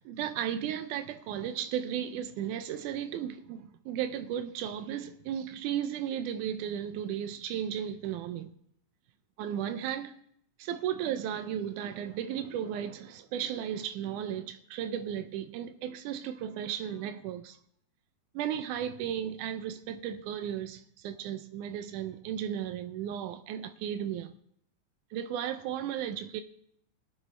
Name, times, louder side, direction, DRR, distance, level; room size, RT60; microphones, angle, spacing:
voice 1, 0.0-8.5 9.4-10.1 10.6-17.6 18.4-24.3 25.1-26.4, right 9 dB, 85° right, 1.8 m, -35 dB
21.0 x 7.3 x 3.2 m
omnidirectional pair, 4.3 m